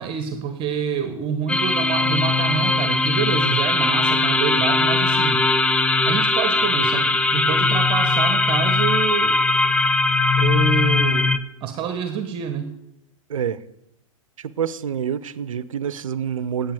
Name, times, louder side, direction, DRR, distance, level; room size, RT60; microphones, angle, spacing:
voice 1, 0.0-5.5 6.0-9.5 10.4-11.3 11.6-12.7, right 7 dB, 30° right, 9 dB, 1.2 m, -27 dB
sound 1, 1.5-11.4, left 3 dB, 5° left, 0.4 m, -20 dB
voice 2, 14.4-16.7, right 8 dB, 70° right, 17 dB, 0.7 m, -27 dB
10.5 x 8.4 x 7.6 m, 0.83 s
figure-of-eight pair, 105°, 18 cm